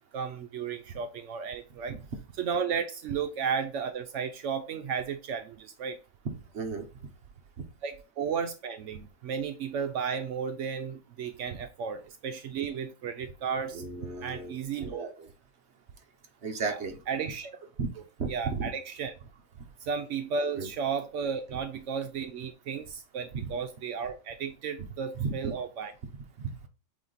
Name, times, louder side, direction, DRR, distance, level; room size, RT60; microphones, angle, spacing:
voice 1, 0.1-2.0 2.4-6.0 7.8-13.8 14.2-15.1 16.6-16.8 17.1-17.5 18.3-19.1 19.8-25.9, right 6 dB, 80° right, 0.6 m, -34 dB
voice 2, 6.2-6.9 7.6-7.7 13.7-15.3 16.4-17.0 17.8-17.9 18.2-18.7 20.5-20.7 23.3-23.5 25.1-25.3 26.4-26.7, right 4 dB, 45° right, 1.0 m, -34 dB
8.4 x 2.8 x 3.9 m
omnidirectional pair, 2.0 m